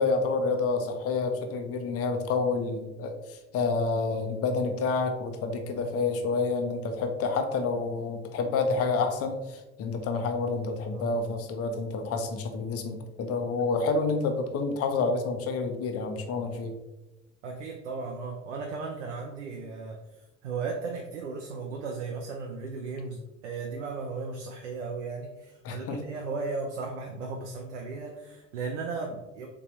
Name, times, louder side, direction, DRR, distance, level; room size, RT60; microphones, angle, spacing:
voice 1, 0.0-16.7 25.6-26.0, left 4 dB, 40° left, 6 dB, 0.7 m, -29 dB
voice 2, 17.4-20.0 20.4-29.5, right 4 dB, 80° right, 1 dB, 0.5 m, -36 dB
3.7 x 3.7 x 2.9 m, 1.0 s
figure-of-eight pair, 55°, 36 cm